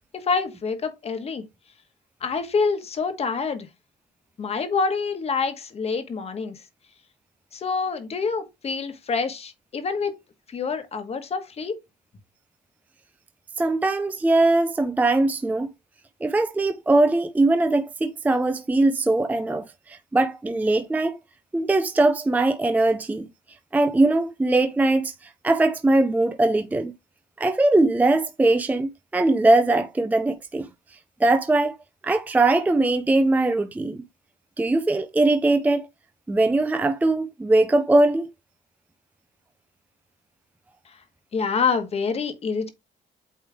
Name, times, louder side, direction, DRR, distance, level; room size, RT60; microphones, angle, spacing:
voice 1, 0.1-1.4 2.2-3.7 4.4-6.6 7.5-10.2 10.5-11.8 41.3-42.7, left 5 dB, 35° left, 1.3 m, -26 dB
voice 2, 13.6-15.7 16.2-21.2 21.5-23.3 23.7-26.9 27.4-31.8 32.0-34.0 34.6-35.9 36.3-38.3, right 2 dB, 10° right, 0.5 m, -21 dB
8.5 x 3.2 x 3.5 m
cardioid pair, 110°, 17 cm